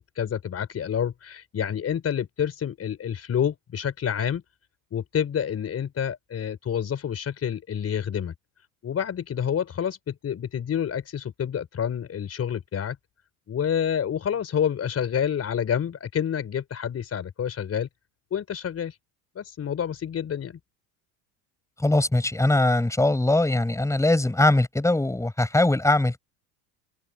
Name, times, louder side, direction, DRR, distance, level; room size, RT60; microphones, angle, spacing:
voice 1, 0.0-4.4 4.9-8.3 8.8-13.0 13.5-17.9 18.3-19.0 19.3-20.6, left 8 dB, 35° left, 4.4 m, -28 dB
voice 2, 21.8-26.2, left 2 dB, 5° left, 6.2 m, -21 dB
open air
supercardioid pair, 105°, 41 cm